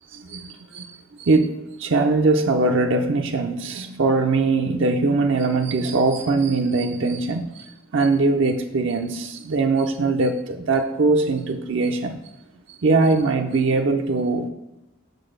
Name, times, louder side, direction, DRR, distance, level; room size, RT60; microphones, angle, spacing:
voice 1, 0.1-0.9 1.2-1.5 1.8-12.2 12.8-14.5, right 3 dB, 60° right, 4 dB, 0.5 m, -21 dB
6.8 x 4.0 x 6.5 m, 0.95 s
head